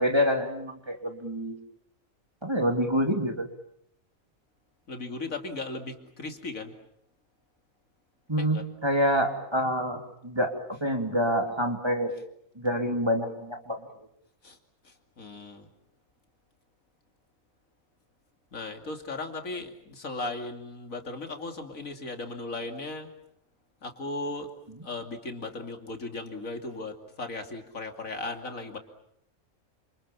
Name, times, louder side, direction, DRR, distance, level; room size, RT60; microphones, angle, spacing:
voice 1, 0.0-1.6 2.4-3.5 8.3-12.1 12.6-13.8, equal, 20° right, 4 dB, 2.9 m, -27 dB
voice 2, 4.9-6.7 8.4-8.6 14.4-14.6 14.8-15.7 18.5-23.1 23.8-24.5 24.8-28.8, left 2 dB, 75° left, 5 dB, 3.1 m, -37 dB
28.5 x 27.5 x 7.2 m, 0.73 s
omnidirectional pair, 1.4 m